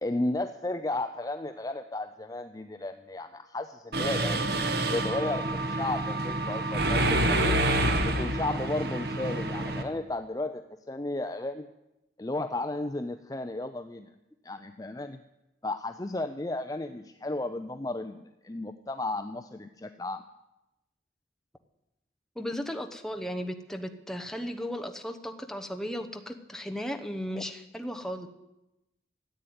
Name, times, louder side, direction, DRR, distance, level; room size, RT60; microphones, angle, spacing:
voice 1, 0.0-4.4 4.9-7.6 8.0-11.7 12.2-14.1 14.4-15.2 15.6-20.2 27.4-27.5, left 2 dB, 20° left, 8 dB, 0.5 m, -34 dB
Mechanisms, 3.9-9.8, right 1 dB, 60° right, 1.3 m, -27 dB
voice 2, 22.4-28.3, equal, 5° left, 4 dB, 1.0 m, -35 dB
14.0 x 9.1 x 9.5 m, 0.95 s
head